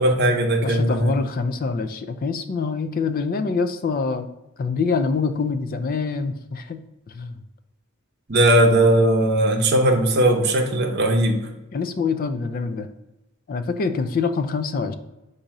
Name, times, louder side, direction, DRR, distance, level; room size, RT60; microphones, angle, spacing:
voice 1, 0.0-1.2 8.3-11.4, right 1 dB, 50° right, 3 dB, 0.7 m, -18 dB
voice 2, 0.6-4.3 4.6-7.4 11.7-12.9 13.5-14.9, left 4 dB, 40° left, 9 dB, 0.3 m, -25 dB
4.1 x 2.6 x 4.7 m, 0.98 s
head